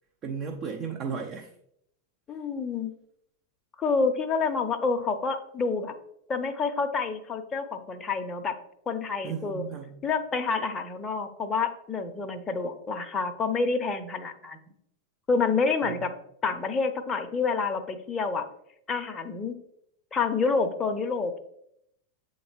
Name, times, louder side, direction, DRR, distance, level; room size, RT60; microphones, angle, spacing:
voice 1, 0.2-1.5 9.2-10.0 15.8-15.9, right 6 dB, 30° right, 3 dB, 0.5 m, -34 dB
voice 2, 2.3-2.9 3.8-5.9 6.3-8.6 8.9-9.6 10.0-14.6 15.3-16.1 16.4-18.4 18.9-19.5 20.1-21.4, left 4 dB, 20° left, 7 dB, 0.6 m, -28 dB
7.6 x 3.9 x 3.2 m, 0.74 s
figure-of-eight pair, 90°, 0 cm